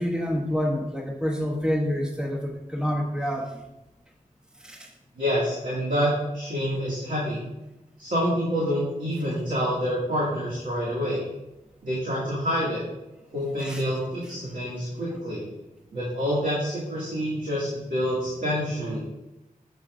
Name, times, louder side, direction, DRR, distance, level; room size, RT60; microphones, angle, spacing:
voice 1, 0.0-3.6 4.6-4.9 13.6-13.8, equal, 5° right, 0 dB, 1.1 m, -28 dB
voice 2, 5.2-7.4 8.0-11.3 11.8-12.8 13.3-15.4 15.9-19.0, equal, 65° right, -7 dB, 2.4 m, -27 dB
9.5 x 7.2 x 2.6 m, 0.96 s
wide cardioid pair, 105°, 15 cm